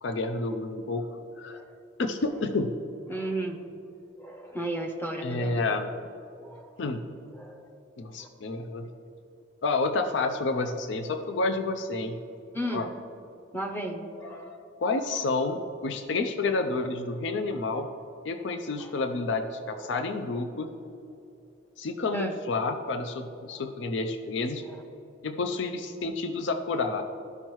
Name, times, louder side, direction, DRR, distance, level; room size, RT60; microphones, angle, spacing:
voice 1, 0.0-1.1 1.4-1.6 2.0-2.7 5.2-5.9 6.8-7.0 8.0-8.9 9.6-12.2 12.7-12.9 14.8-17.9 18.2-20.7 21.8-24.6 25.2-27.0, left 3 dB, 65° left, 7 dB, 0.4 m, -29 dB
voice 2, 3.1-3.6 4.2-5.6 6.4-6.7 7.3-7.7 10.6-10.7 12.5-12.9 13.5-14.6 18.8-18.9 19.7-20.0 22.1-22.3 23.5-23.6 24.7-24.8, right 1 dB, 10° left, 2 dB, 0.6 m, -35 dB
13.5 x 5.4 x 3.0 m, 2.7 s
head